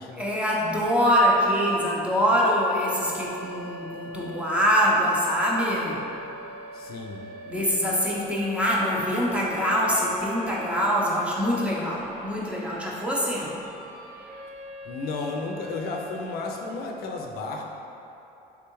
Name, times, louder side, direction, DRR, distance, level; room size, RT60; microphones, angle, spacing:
voice 1, 0.2-6.0 7.5-13.6, equal, 5° right, -5 dB, 0.6 m, -24 dB
sound 1, 2.3-16.3, left 1 dB, 70° right, 0.5 m, -42 dB
voice 2, 6.7-7.2 14.8-17.6, left 3 dB, 65° left, 1 dB, 0.4 m, -33 dB
3.6 x 3.3 x 3.0 m, 2.9 s
cardioid pair, 110°, 17 cm